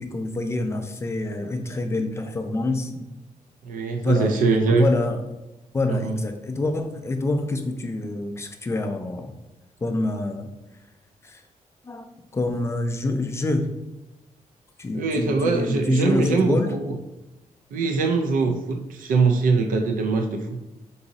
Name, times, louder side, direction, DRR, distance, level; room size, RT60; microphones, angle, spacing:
voice 1, 0.0-3.1 4.0-4.3 4.8-5.2 5.7-9.3 9.8-10.5 11.2-11.4 11.8-12.1 12.3-13.7 14.8-16.7, left 2 dB, 20° left, 6 dB, 0.3 m, -26 dB
voice 2, 3.6-4.9 5.9-6.2 14.9-17.0 17.7-20.6, right 4 dB, 80° right, 4 dB, 0.4 m, -22 dB
3.9 x 2.6 x 3.9 m, 0.99 s
wide cardioid pair, 175°, 14 cm